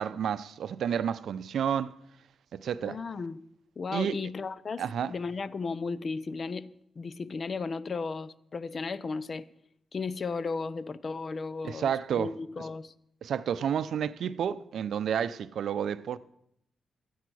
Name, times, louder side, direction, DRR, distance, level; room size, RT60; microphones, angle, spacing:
voice 1, 0.0-1.9 2.5-3.0 3.9-4.2 4.8-5.1 11.6-12.3 12.6-12.7 13.2-16.2, right 8 dB, 75° right, 0.5 m, -30 dB
voice 2, 2.8-3.4 3.8-6.7 7.0-9.4 9.9-12.9, left 4 dB, 45° left, 0.6 m, -35 dB
13.0 x 9.3 x 6.2 m
cardioid pair, 95°, 0 cm